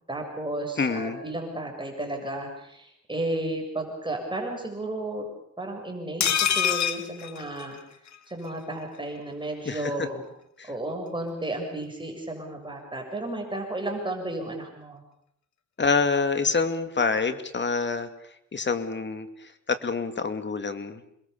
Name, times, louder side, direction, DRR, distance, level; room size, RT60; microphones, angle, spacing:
voice 1, 0.1-5.3 5.6-7.8 8.3-10.2 10.6-15.0, right 1 dB, 15° right, 2 dB, 7.2 m, -33 dB
voice 2, 0.8-1.2 9.7-10.1 10.6-10.7 15.8-18.1 18.5-21.0, left 4 dB, 35° left, 9 dB, 2.5 m, -27 dB
sound 1, 6.2-8.2 8.5-8.6 8.8-9.0, left 9 dB, 65° left, 1.8 m, -26 dB
28.0 x 21.5 x 7.1 m, 0.75 s
cardioid pair, 90°, 30 cm